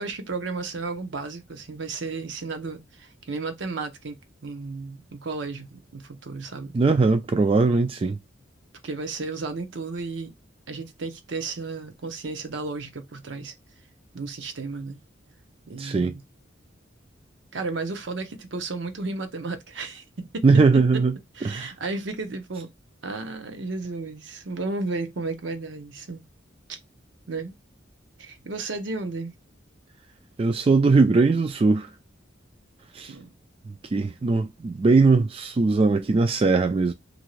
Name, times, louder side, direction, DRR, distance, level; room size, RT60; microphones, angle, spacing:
voice 1, 0.0-4.2 4.4-6.7 8.8-10.3 10.7-13.5 14.1-15.0 15.7-16.2 17.5-20.5 21.3-22.7 23.0-26.2 26.7-26.8 27.3-27.5 28.2-29.3 33.1-33.3, right 3 dB, 65° right, 0.6 m, -33 dB
voice 2, 6.7-8.2 15.8-16.1 20.4-21.1 21.4-21.7 30.4-31.9 32.9-33.1 33.9-36.9, right 3 dB, 30° right, 0.3 m, -20 dB
2.9 x 2.5 x 3.1 m
head